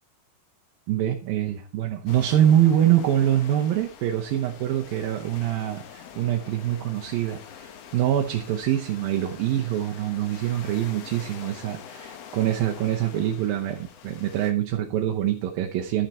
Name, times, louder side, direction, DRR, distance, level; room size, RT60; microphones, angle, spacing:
voice 1, 0.9-16.1, right 11 dB, 80° right, 2 dB, 2.7 m, -24 dB
sound 1, 2.1-14.5, left 8 dB, 65° left, 1.7 m, -45 dB
12.0 x 6.6 x 4.3 m, 0.35 s
omnidirectional pair, 4.2 m